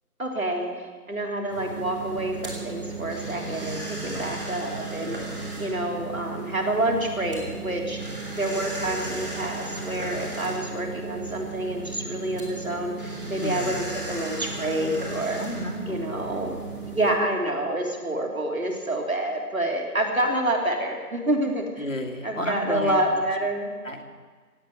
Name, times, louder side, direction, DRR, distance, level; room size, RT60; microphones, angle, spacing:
voice 1, 0.2-5.1 5.6-8.0 8.4-15.4 15.9-16.6 16.9-21.8 22.2-23.7, right 1 dB, 60° right, 1 dB, 3.5 m, -28 dB
sound 1, 1.5-17.1, right 3 dB, 35° right, 3.2 m, -35 dB
voice 2, 4.1-4.5 13.4-13.9 15.4-16.2 21.8-23.0 23.8-24.0, left 1 dB, 55° left, 1 dB, 2.4 m, -32 dB
17.5 x 8.1 x 9.4 m, 1.5 s
figure-of-eight pair, 180°, 46 cm